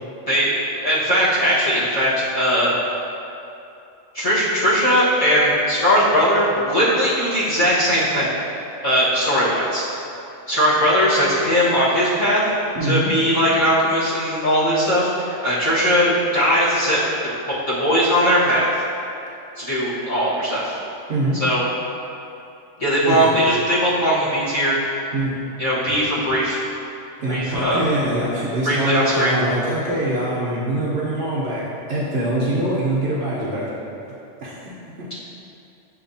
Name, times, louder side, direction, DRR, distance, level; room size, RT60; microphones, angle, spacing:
voice 1, 0.3-2.7 4.1-8.3 8.8-9.8 10.5-12.4 12.8-18.7 19.6-20.8 21.4-21.6 22.8-25.0 25.6-26.6 27.3-27.8 28.6-29.3, equal, 30° left, -12 dB, 1.2 m, -19 dB
voice 2, 12.7-13.1 21.1-21.4 23.1-23.3 25.1-25.3 27.2-31.6 31.9-33.7 34.4-34.7, right 1 dB, 60° right, -6 dB, 0.9 m, -23 dB
6.7 x 2.8 x 2.6 m, 2.8 s
omnidirectional pair, 1.3 m